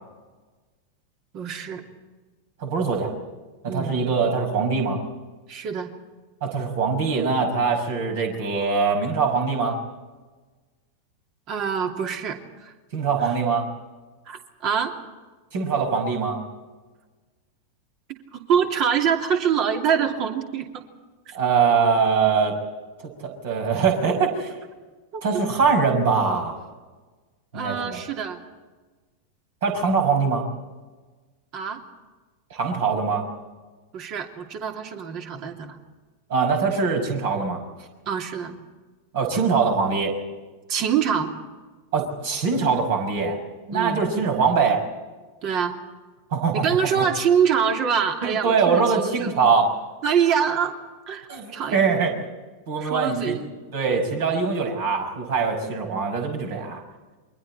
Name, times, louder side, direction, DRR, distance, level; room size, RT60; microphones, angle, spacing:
voice 1, 1.3-1.8 3.7-3.9 5.5-5.9 11.5-12.7 13.2-13.3 14.3-14.9 18.1-20.8 21.3-21.4 25.1-25.2 27.5-28.4 31.5-31.8 33.9-35.8 38.1-38.6 40.7-41.3 43.7-44.0 45.4-45.7 46.5-49.3 50.0-50.8 51.1-51.8 52.8-53.4, right 7 dB, 40° right, 4 dB, 2.8 m, -25 dB
voice 2, 2.6-3.1 3.6-5.0 6.4-9.8 12.9-13.7 15.5-16.4 21.3-22.6 23.0-24.6 25.2-26.6 27.5-28.0 29.6-30.5 32.5-33.3 36.3-37.6 39.1-40.2 41.9-43.4 43.7-44.8 46.3-46.7 47.0-47.1 48.2-49.7 51.3-52.1 52.7-53.4 53.7-56.8, right 5 dB, 55° right, 3 dB, 5.8 m, -22 dB
28.5 x 23.5 x 4.3 m, 1.3 s
figure-of-eight pair, 90°, 0 cm